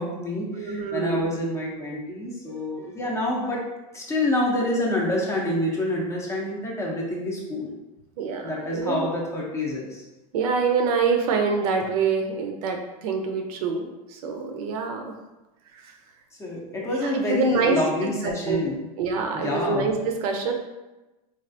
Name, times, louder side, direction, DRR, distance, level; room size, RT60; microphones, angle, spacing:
voice 1, 0.0-3.6 3.9-7.8 8.4-10.0 16.4-18.8 19.3-19.9, left 1 dB, 15° left, -3 dB, 0.5 m, -27 dB
voice 2, 0.5-1.3 8.2-9.1 10.3-15.0 15.7-15.9 16.9-17.8 18.2-18.7 19.0-20.5, right 4 dB, 65° right, 3 dB, 0.6 m, -25 dB
3.3 x 2.4 x 2.6 m, 1.0 s
supercardioid pair, 140°, 21 cm